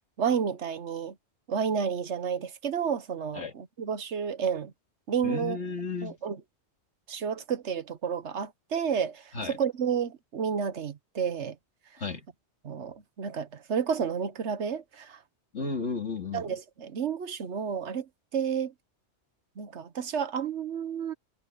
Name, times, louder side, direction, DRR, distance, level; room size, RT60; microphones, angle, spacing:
voice 1, 0.2-1.1 1.5-4.7 5.1-5.6 6.0-6.4 7.1-11.5 12.6-15.2 16.3-18.1 18.3-18.7 19.6-21.1, right 7 dB, 80° right, 1.4 m, -31 dB
voice 2, 5.2-6.1 9.3-9.6 12.0-12.2 15.5-16.5, left 4 dB, 90° left, 3.0 m, -33 dB
omnidirectional pair, 1.2 m